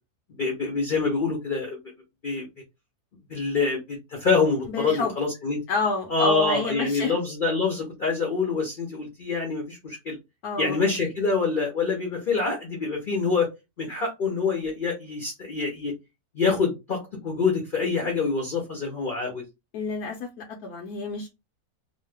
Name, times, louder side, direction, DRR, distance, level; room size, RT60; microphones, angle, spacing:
voice 1, 0.4-1.8 2.2-2.5 3.3-5.6 6.1-10.2 10.6-13.5 13.8-15.9 16.3-19.4, left 4 dB, 50° left, 0.6 m, -26 dB
voice 2, 4.7-5.1 5.7-7.1 10.4-10.8 19.7-21.3, left 4 dB, 70° left, 1.1 m, -29 dB
3.0 x 2.0 x 3.3 m
omnidirectional pair, 1.7 m